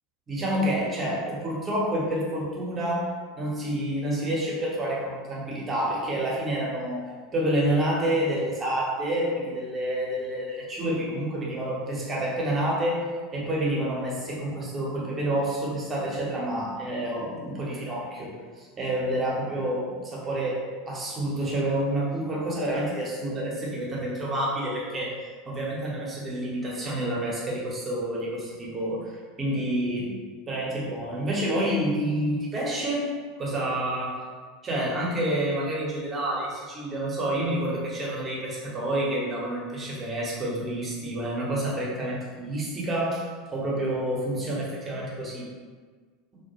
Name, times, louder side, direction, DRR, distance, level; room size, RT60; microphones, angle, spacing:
voice 1, 0.3-3.1 3.4-7.0 7.3-13.0 13.3-25.1 25.5-30.1 30.5-33.0 33.4-34.2 34.6-43.2 43.5-45.5, right 1 dB, 25° right, -5 dB, 0.8 m, -28 dB
2.2 x 2.1 x 2.8 m, 1.5 s
figure-of-eight pair, 75°, 0 cm